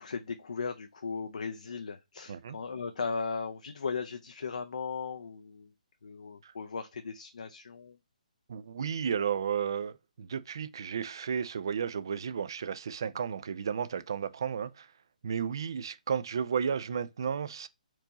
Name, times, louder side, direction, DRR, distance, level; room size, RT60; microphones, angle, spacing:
voice 1, 0.0-5.7 6.0-8.0, left 5 dB, 60° left, 0.5 m, -37 dB
voice 2, 8.5-14.9 15.2-17.7, right 7 dB, 30° right, 0.3 m, -33 dB
4.5 x 2.7 x 2.8 m
hypercardioid pair, 180°, 4 cm